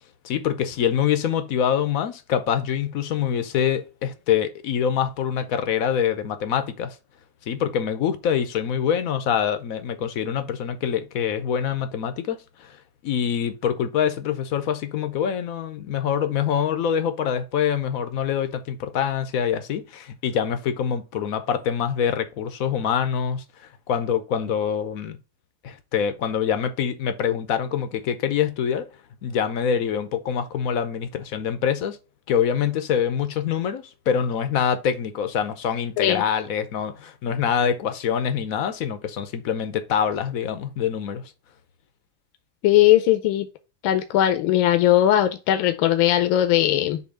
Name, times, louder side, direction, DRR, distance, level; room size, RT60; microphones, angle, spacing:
voice 1, 0.2-7.0 7.5-12.8 13.0-23.4 23.9-25.2 25.6-28.9 29.2-32.0 32.3-41.2, left 8 dB, 65° left, 0.8 m, -25 dB
voice 2, 42.6-43.5 43.8-47.0, left 12 dB, 80° left, 1.4 m, -19 dB
6.9 x 2.7 x 5.3 m
omnidirectional pair, 2.2 m